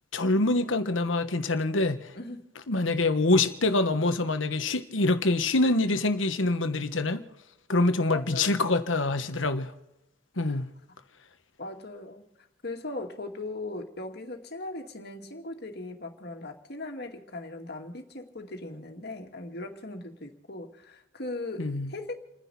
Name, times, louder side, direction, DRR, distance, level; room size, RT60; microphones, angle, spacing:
voice 1, 0.1-2.1 2.7-7.2 7.7-9.7 10.4-10.7 21.6-21.9, left 2 dB, 90° left, 1.3 m, -25 dB
voice 2, 8.0-8.6 10.4-10.6 10.9-11.0 11.6-22.1, left 2 dB, 55° left, 2.3 m, -39 dB
30.0 x 10.5 x 4.2 m
head